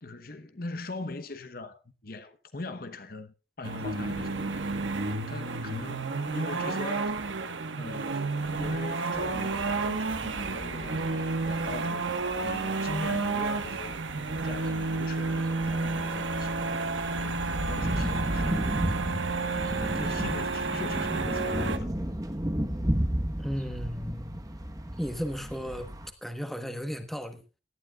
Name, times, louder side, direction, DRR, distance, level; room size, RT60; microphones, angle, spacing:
voice 1, 0.0-4.7 5.3-7.2 7.8-12.0 12.4-14.1 14.4-16.7 17.2-18.8 19.8-21.9, left 2 dB, 50° left, 1.0 m, -41 dB
sound 1, 3.6-21.8, right 3 dB, 90° right, 1.4 m, -31 dB
sound 2, 9.1-26.1, equal, 20° right, 1.1 m, -34 dB
voice 2, 23.4-24.4 25.0-25.9 26.2-27.4, equal, ahead, 1.1 m, -34 dB
17.5 x 12.0 x 2.4 m
head